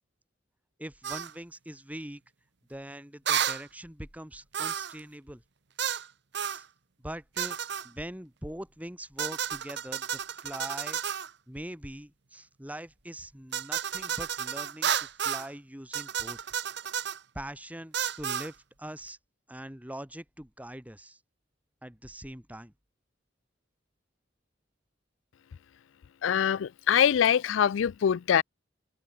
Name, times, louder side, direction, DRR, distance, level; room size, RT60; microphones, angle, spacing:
voice 1, 0.8-2.2 2.7-5.4 6.4-6.7 7.0-7.6 7.8-11.0 11.5-16.4 17.4-19.2 19.5-21.2 21.8-22.7, right 1 dB, 10° right, 3.5 m, -42 dB
sound 1, 1.0-1.3 3.3-3.6 4.5-5.0 5.8-6.1 6.3-6.6 7.4-7.9 9.2-11.3 13.5-15.5 15.9-17.2 17.9-18.5, right 8 dB, 65° right, 1.1 m, -32 dB
voice 2, 26.2-28.4, left 8 dB, 85° left, 0.4 m, -24 dB
head